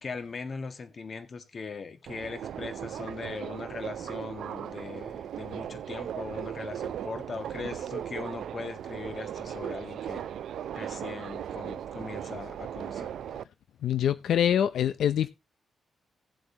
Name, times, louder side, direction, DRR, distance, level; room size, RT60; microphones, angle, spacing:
voice 1, 0.0-10.3 10.7-13.2, left 4 dB, 40° left, 1.7 m, -40 dB
Subway metro underground, 2.1-13.4, right 10 dB, 80° right, 0.5 m, -37 dB
voice 2, 13.8-15.3, left 10 dB, 80° left, 0.5 m, -25 dB
18.0 x 7.7 x 2.8 m
wide cardioid pair, 135°, 0 cm